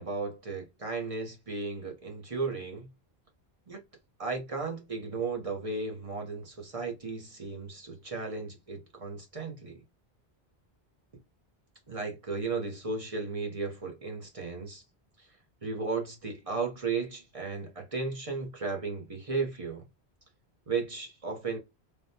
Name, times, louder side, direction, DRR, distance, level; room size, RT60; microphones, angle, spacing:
voice 1, 0.0-2.9 3.7-3.8 4.2-9.8 11.9-14.8 15.2-15.3 15.6-19.9 20.7-21.6, right 4 dB, 35° right, 0.7 m, -35 dB
3.3 x 2.1 x 2.6 m
omnidirectional pair, 1.1 m